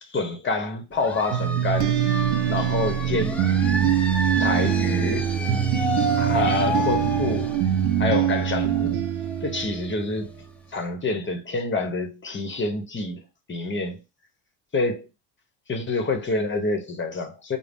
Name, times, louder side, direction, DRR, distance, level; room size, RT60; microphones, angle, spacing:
voice 1, 0.0-2.0 2.4-3.8 4.4-5.3 6.2-7.6 8.0-9.0 9.4-10.3 10.7-14.0 14.7-15.1 15.7-17.6, left 3 dB, 25° left, 0.8 m, -27 dB
sound 1, 0.9-10.4, equal, 5° left, 0.5 m, -31 dB
sound 2, 1.3-10.0, right 10 dB, 80° right, 0.6 m, -24 dB
3.8 x 2.0 x 3.5 m
supercardioid pair, 85°, 48 cm